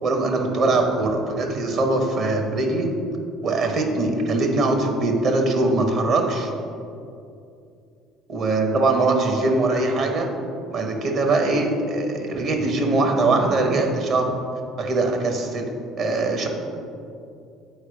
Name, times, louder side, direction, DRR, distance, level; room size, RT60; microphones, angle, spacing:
voice 1, 0.0-2.9 3.4-6.5 8.3-10.3 10.7-14.3 14.8-15.7 16.0-16.5, right 2 dB, 50° right, 3 dB, 1.0 m, -22 dB
8.6 x 4.6 x 3.5 m, 2.6 s
figure-of-eight pair, 60°, 0 cm